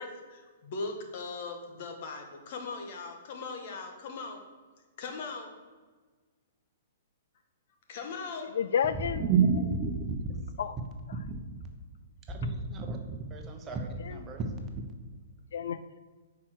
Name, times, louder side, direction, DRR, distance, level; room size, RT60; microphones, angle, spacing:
voice 1, 0.0-4.4 5.0-5.5 7.9-8.5, left 4 dB, 55° left, 4 dB, 1.3 m, -39 dB
voice 2, 8.5-9.2 10.6-11.3 14.0-14.2 15.5-16.1, left 8 dB, 70° left, 12 dB, 0.3 m, -32 dB
voice 3, 9.3-10.2 11.2-11.3 12.3-13.0 13.3-14.4, right 5 dB, 25° right, 3 dB, 1.0 m, -29 dB
5.6 x 4.8 x 6.4 m, 1.4 s
hypercardioid pair, 130°, 0 cm